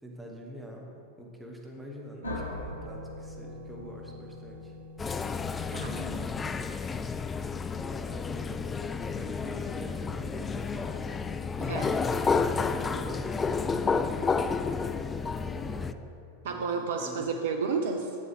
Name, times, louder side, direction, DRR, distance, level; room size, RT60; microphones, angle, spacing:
voice 1, 0.0-4.7 5.7-6.5 7.7-11.3 12.7-14.3 15.2-16.0 16.4-17.3, equal, 5° right, -1 dB, 1.4 m, -45 dB
sound 1, 2.2-6.9, left 1 dB, 75° left, 1.1 m, -42 dB
sound 2, 5.0-15.9, left 5 dB, 15° left, 0.3 m, -31 dB
voice 2, 11.6-12.0 16.4-18.2, right 5 dB, 60° right, 4 dB, 0.5 m, -31 dB
11.5 x 7.7 x 3.3 m, 2.6 s
figure-of-eight pair, 90°, 0 cm